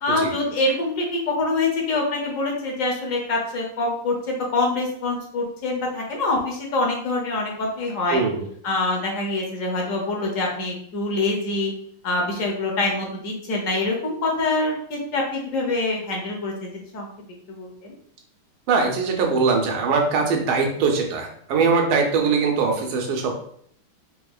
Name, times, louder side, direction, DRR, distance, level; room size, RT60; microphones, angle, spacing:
voice 1, 0.0-8.2 8.6-11.7 12.0-17.1 17.5-17.9, left 2 dB, 55° left, 0 dB, 0.9 m, -25 dB
voice 2, 8.1-8.5 18.7-23.4, right 4 dB, 85° right, 2 dB, 1.6 m, -21 dB
4.6 x 2.8 x 2.3 m, 0.63 s
omnidirectional pair, 2.2 m